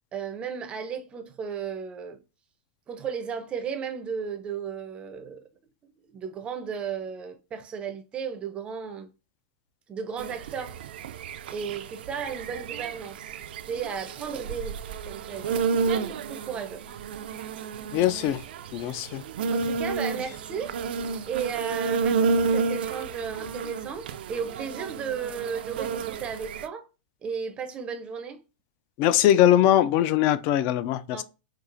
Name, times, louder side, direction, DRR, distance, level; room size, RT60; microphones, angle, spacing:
voice 1, 0.1-2.2 2.9-5.4 6.1-9.1 9.9-10.8 11.5-13.4 13.7-14.8 15.0-16.8 19.5-20.7 21.3-26.9 27.2-28.4 31.1-31.2, right 6 dB, 20° right, 0.5 m, -34 dB
sound 1, 10.2-26.7, right 5 dB, 80° right, 0.3 m, -31 dB
voice 2, 17.9-18.4 18.7-19.2 29.0-31.2, left 12 dB, 40° left, 0.3 m, -21 dB
4.5 x 2.4 x 2.4 m
supercardioid pair, 150°, 5 cm